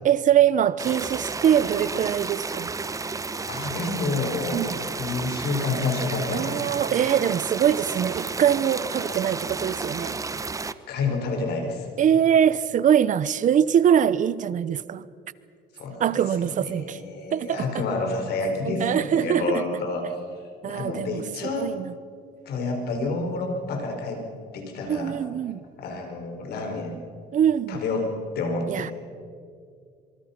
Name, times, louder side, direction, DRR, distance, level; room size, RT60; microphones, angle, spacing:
voice 1, 0.0-2.7 4.5-4.8 6.3-10.2 12.0-15.1 16.0-17.0 17.3-17.8 18.6-19.7 20.6-21.2 21.6-21.9 24.9-25.6 27.3-27.8 28.7-28.9, right 9 dB, 50° right, 0.8 m, -23 dB
sound 1, 0.8-10.7, right 4 dB, 20° right, 0.8 m, -32 dB
voice 2, 3.5-4.7 5.0-6.6 10.3-10.4 10.9-11.9 15.7-20.2 20.6-21.7 22.4-24.2 24.5-25.2 25.8-27.0 27.7-28.9, left 3 dB, 70° left, 5.0 m, -29 dB
26.0 x 24.5 x 5.9 m
cardioid pair, 110°, 17 cm